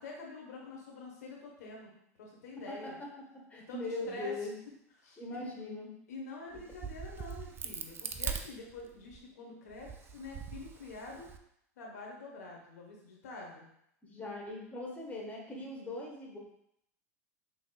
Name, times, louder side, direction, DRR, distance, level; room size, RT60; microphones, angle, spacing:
voice 1, 0.0-1.9 2.2-3.0 3.7-4.3 5.0-5.5 6.1-11.3 11.8-13.6, left 3 dB, 80° left, -1 dB, 1.0 m, -46 dB
voice 2, 2.7-3.1 3.5-4.5 5.2-5.9 14.0-16.4, left 2 dB, 15° left, -1 dB, 1.1 m, -40 dB
Crack, 6.5-9.2 9.7-11.4, right 7 dB, 25° right, 0.3 m, -41 dB
5.5 x 2.9 x 2.3 m, 0.74 s
hypercardioid pair, 100°, 9 cm